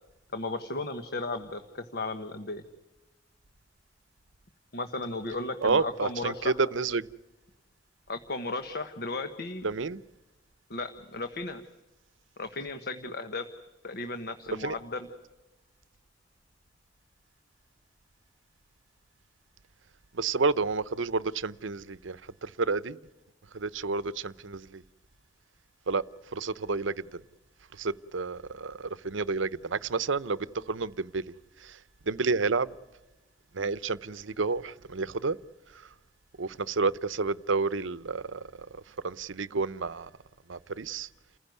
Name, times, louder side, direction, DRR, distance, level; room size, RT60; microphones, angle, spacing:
voice 1, 0.3-2.6 4.7-6.6 8.1-9.7 10.7-11.6 12.4-13.5 13.8-15.1, left 3 dB, 55° left, 1.4 m, -35 dB
voice 2, 5.6-7.1 9.6-10.0 14.6-14.7 20.1-23.0 23.5-24.8 25.9-26.0 26.3-26.9 27.8-31.2 31.6-31.8 32.1-32.7 33.5-35.4 36.4-38.7 39.0-40.1 40.5-41.1, right 4 dB, 80° right, 0.8 m, -30 dB
29.5 x 15.5 x 9.4 m
head